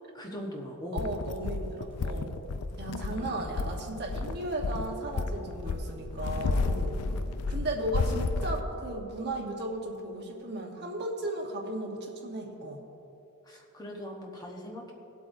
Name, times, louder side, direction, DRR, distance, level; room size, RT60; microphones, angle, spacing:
voice 1, 0.1-1.0 3.1-3.8 13.4-14.9, equal, 15° left, -1 dB, 1.2 m, -41 dB
voice 2, 0.9-2.4 2.8-7.1 7.5-12.8, right 1 dB, 50° right, 1 dB, 1.2 m, -35 dB
sound 1, 1.0-8.6, left 3 dB, 90° left, 0.5 m, -32 dB
19.0 x 8.0 x 2.7 m, 2.9 s
head